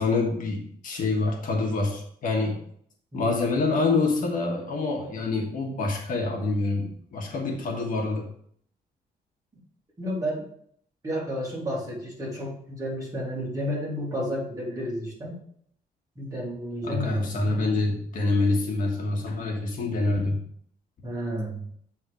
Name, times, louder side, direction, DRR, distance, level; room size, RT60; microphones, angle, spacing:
voice 1, 0.0-2.6 3.1-8.3 16.8-20.4, left 3 dB, 55° left, 1 dB, 1.4 m, -26 dB
voice 2, 3.1-3.4 10.0-10.4 11.0-15.4 16.2-17.4 21.0-21.6, equal, 20° right, -5 dB, 2.7 m, -31 dB
8.0 x 3.6 x 4.8 m, 0.64 s
cardioid pair, 160°, 16 cm